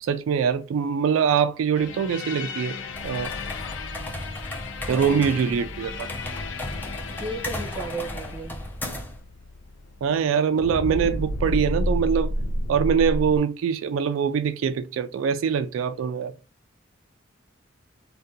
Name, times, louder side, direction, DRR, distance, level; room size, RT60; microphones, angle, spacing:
voice 1, 0.0-2.8 3.0-3.3 4.9-6.1 10.0-12.3 12.7-16.3, right 7 dB, 85° right, 0.3 m, -23 dB
sound 1, 1.8-10.3 10.6-13.4, left 1 dB, 70° left, 0.4 m, -32 dB
sound 2, 2.9-9.2, left 1 dB, 10° left, 0.5 m, -35 dB
voice 2, 4.9-5.2 7.1-8.6, right 2 dB, 25° right, 0.8 m, -34 dB
2.7 x 2.2 x 3.6 m
head